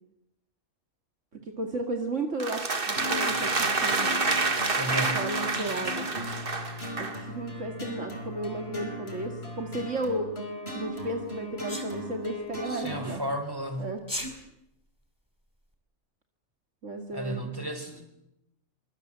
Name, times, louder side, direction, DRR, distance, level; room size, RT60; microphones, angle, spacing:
voice 1, 1.3-4.2 5.1-6.3 7.0-10.3 10.7-13.2 13.8-14.0 16.8-17.5, right 2 dB, 60° right, 4 dB, 2.7 m, -34 dB
sound 1, 2.4-7.2, right 3 dB, 40° right, 2.0 m, -28 dB
sound 2, 3.0-13.2, left 1 dB, 45° left, 5.2 m, -38 dB
voice 2, 4.7-5.3 12.6-13.9 17.1-18.1, right 1 dB, 15° right, 8 dB, 4.4 m, -33 dB
Sneeze, 11.7-11.9 14.0-14.3, equal, 15° left, 4.6 m, -33 dB
27.5 x 25.5 x 7.6 m, 0.84 s
omnidirectional pair, 1.4 m